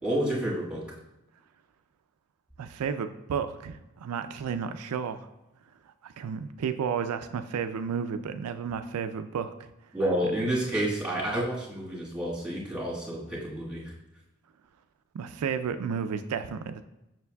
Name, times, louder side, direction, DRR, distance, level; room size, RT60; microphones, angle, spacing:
voice 1, 0.0-0.8 9.9-13.9, right 1 dB, 5° right, -5 dB, 1.5 m, -29 dB
voice 2, 2.6-5.3 5.9-9.7 15.1-16.8, right 6 dB, 90° right, 9 dB, 0.4 m, -32 dB
7.0 x 6.0 x 2.2 m, 0.93 s
head